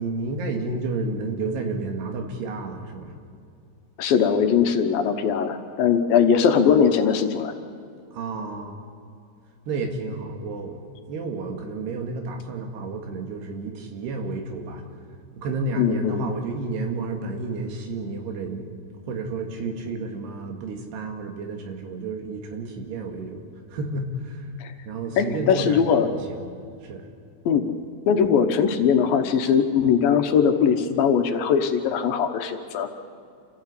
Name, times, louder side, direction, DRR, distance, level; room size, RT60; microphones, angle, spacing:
voice 1, 0.0-3.1 8.1-8.8 9.7-10.8 11.1-14.8 15.4-18.7 19.1-23.4 23.7-24.5 24.9-26.5 26.8-27.1, right 3 dB, 90° right, 4 dB, 4.1 m, -31 dB
voice 2, 4.0-7.5 15.8-16.2 24.6-24.7 25.2-26.1 27.5-27.6 28.1-32.9, left 7 dB, 70° left, 6 dB, 2.6 m, -20 dB
27.5 x 16.0 x 8.4 m, 2.4 s
omnidirectional pair, 4.6 m